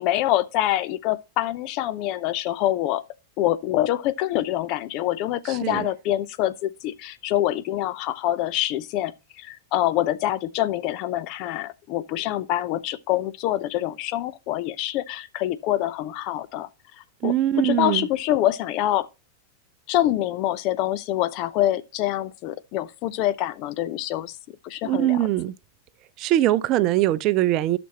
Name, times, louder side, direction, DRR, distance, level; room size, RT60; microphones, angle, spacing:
voice 1, 0.0-3.0 3.4-16.7 17.2-19.1 19.9-24.4 24.6-25.2, left 13 dB, 40° left, 0.6 m, -25 dB
voice 2, 5.5-5.9 17.2-18.1 24.8-25.5 26.2-27.8, right 14 dB, 40° right, 0.5 m, -22 dB
12.0 x 6.1 x 3.0 m
figure-of-eight pair, 90°, 0 cm